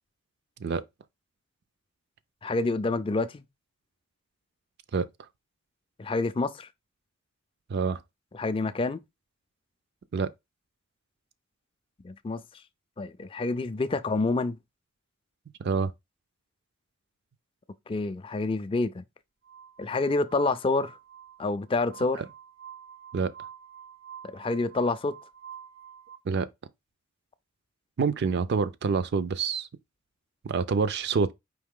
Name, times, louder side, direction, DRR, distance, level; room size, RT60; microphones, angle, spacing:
voice 1, 2.4-3.4 6.0-6.7 8.3-9.0 12.0-12.4 13.0-14.6 17.9-19.0 19.8-21.0 21.4-22.2 24.2-25.1, left 3 dB, 25° left, 0.3 m, -28 dB
voice 2, 15.6-15.9 22.2-22.3 23.1-23.3 26.3-26.5 28.0-29.7 30.4-31.3, right 5 dB, 55° right, 0.4 m, -26 dB
Glass, 19.4-26.2, right 9 dB, 90° right, 0.8 m, -47 dB
4.7 x 3.0 x 3.6 m
head